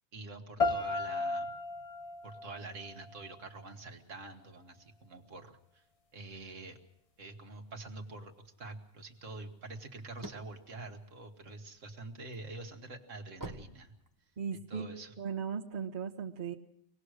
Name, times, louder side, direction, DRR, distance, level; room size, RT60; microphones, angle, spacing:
voice 1, 0.1-1.5 2.2-5.9 6.1-6.8 7.2-14.0 14.5-15.1, right 3 dB, 65° right, 4 dB, 1.9 m, -46 dB
sound 1, 0.6-3.6, left 3 dB, 30° left, 0.8 m, -35 dB
sound 2, 10.0-11.9 12.4-14.6, right 2 dB, 15° right, 1.0 m, -47 dB
voice 2, 14.4-16.5, right 6 dB, 40° right, -3 dB, 1.5 m, -38 dB
25.0 x 19.0 x 6.5 m, 0.78 s
omnidirectional pair, 1.4 m